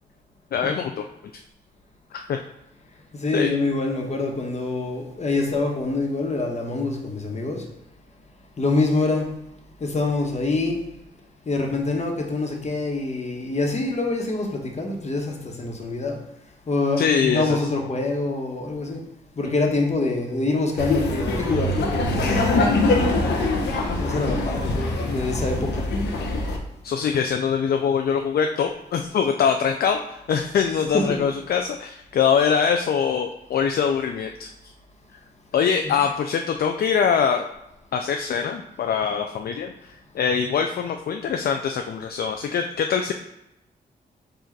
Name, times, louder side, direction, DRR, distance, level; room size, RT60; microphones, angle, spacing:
voice 1, 0.5-1.0 2.1-2.4 3.3-3.5 17.0-17.6 26.8-34.5 35.5-37.5 37.9-43.1, left 7 dB, 60° left, 5 dB, 0.4 m, -23 dB
voice 2, 3.1-7.7 8.6-9.3 9.8-10.8 11.4-16.2 16.7-19.0 19.3-22.4 23.9-25.9 30.9-31.2 35.8-36.0, left 3 dB, 40° left, 1 dB, 1.1 m, -25 dB
Laughter, 20.8-26.6, left 2 dB, 90° left, 0.8 m, -23 dB
4.7 x 2.5 x 4.5 m, 0.87 s
cardioid pair, 60°, 18 cm